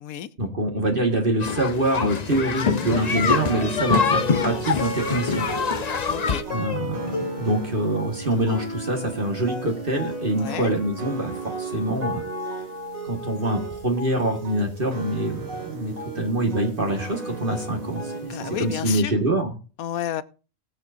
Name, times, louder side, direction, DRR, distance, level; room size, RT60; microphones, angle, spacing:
voice 1, 0.4-5.5 6.5-12.2 13.0-19.5, right 1 dB, 40° right, 2 dB, 1.8 m, -25 dB
sound 1, 1.4-6.4, left 5 dB, 40° left, 0.7 m, -24 dB
sound 2, 3.0-19.0, right 2 dB, 75° right, 2.4 m, -35 dB
Plucked string instrument, 3.2-12.6, left 3 dB, 55° left, 2.6 m, -38 dB
voice 2, 6.1-6.4 10.4-10.7 18.3-19.1 19.8-20.2, left 11 dB, 80° left, 16 dB, 1.2 m, -31 dB
20.0 x 7.5 x 2.6 m, 0.36 s
omnidirectional pair, 1.5 m